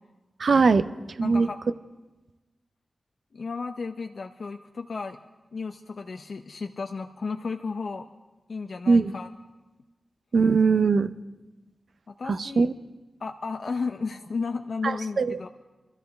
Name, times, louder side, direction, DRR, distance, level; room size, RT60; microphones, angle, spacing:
voice 1, 0.4-1.5 8.9-9.1 10.3-11.1 12.3-12.7 14.8-15.4, right 4 dB, 60° right, 12 dB, 0.5 m, -21 dB
voice 2, 1.2-1.6 3.3-5.2 5.5-8.1 8.5-9.3 12.1-12.7 13.2-15.5, left 4 dB, 60° left, 4 dB, 0.5 m, -33 dB
25.5 x 14.0 x 3.4 m, 1.1 s
wide cardioid pair, 130°, 0 cm